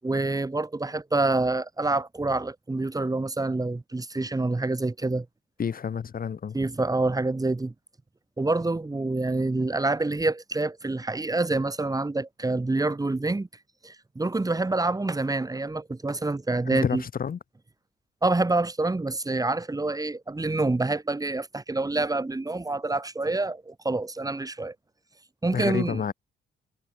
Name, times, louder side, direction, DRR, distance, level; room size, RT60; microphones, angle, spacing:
voice 1, 0.0-5.3 6.5-7.7 8.4-13.5 13.8-17.0 18.2-24.7 25.4-26.0, right 2 dB, 20° right, 8.0 m, -27 dB
voice 2, 5.6-6.6 16.7-17.4 25.5-26.1, left 7 dB, 45° left, 2.6 m, -29 dB
cardioid pair, 90°, 20 cm